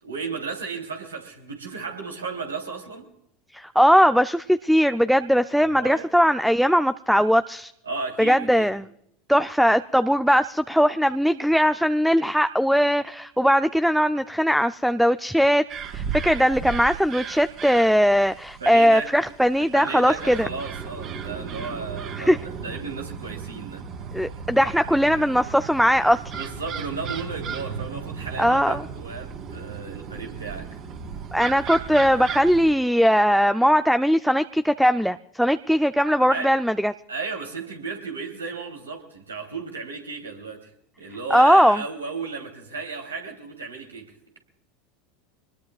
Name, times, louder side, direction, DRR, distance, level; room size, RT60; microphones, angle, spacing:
voice 1, 0.0-3.1 5.6-6.0 7.8-8.8 18.6-23.8 26.3-30.8 36.3-36.6 37.1-44.4, right 4 dB, 85° right, 3 dB, 3.2 m, -34 dB
voice 2, 3.5-7.7 8.2-8.9 9.3-15.6 15.9-20.5 22.3-22.4 24.1-26.2 28.4-28.8 31.3-36.9 41.3-41.8, equal, ahead, 11 dB, 0.5 m, -20 dB
sound 1, 15.7-32.7, right 6 dB, 45° right, 3.4 m, -35 dB
25.5 x 20.5 x 2.4 m, 0.75 s
figure-of-eight pair, 80°, 0 cm